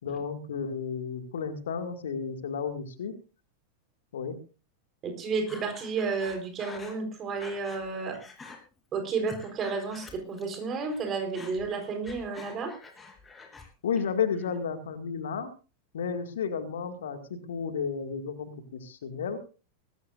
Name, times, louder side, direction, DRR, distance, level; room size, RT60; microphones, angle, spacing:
voice 1, 0.0-3.2 4.1-4.4 13.8-15.5 15.9-19.4, left 6 dB, 60° left, 9 dB, 2.0 m, -32 dB
voice 2, 5.0-8.2 8.9-12.7, right 4 dB, 30° right, 5 dB, 4.1 m, -32 dB
Breathing, 5.5-7.9 8.1-8.6 9.0-10.6 10.8-13.7 14.0-14.6, left 4 dB, 15° left, 3.4 m, -47 dB
22.0 x 13.5 x 2.5 m, 0.33 s
figure-of-eight pair, 90°, 0 cm